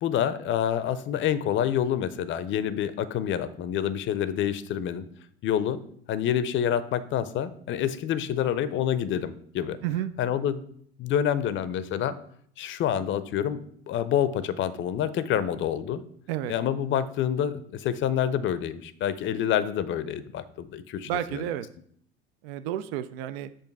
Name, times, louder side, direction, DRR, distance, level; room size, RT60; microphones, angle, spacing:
voice 1, 0.0-5.0 5.4-5.8 6.1-9.8 10.2-10.6 11.0-12.2 12.6-16.0 16.5-21.4, left 9 dB, 40° left, 13 dB, 0.5 m, -27 dB
voice 2, 9.8-10.1 16.3-16.5 21.1-21.7 22.4-23.5, right 11 dB, 70° right, 12 dB, 0.5 m, -31 dB
7.1 x 2.6 x 5.3 m, 0.63 s
hypercardioid pair, 90°, 31 cm